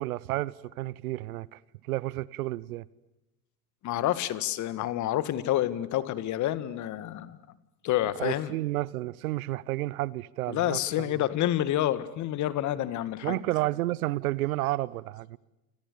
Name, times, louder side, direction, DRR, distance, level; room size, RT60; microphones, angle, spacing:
voice 1, 0.0-1.6 1.9-2.8 8.2-11.1 13.2-15.4, right 17 dB, 65° right, 1.0 m, -31 dB
voice 2, 3.8-7.4 7.8-8.6 10.5-13.4, left 13 dB, 35° left, 2.0 m, -28 dB
29.0 x 27.5 x 7.0 m
hypercardioid pair, 95°, 47 cm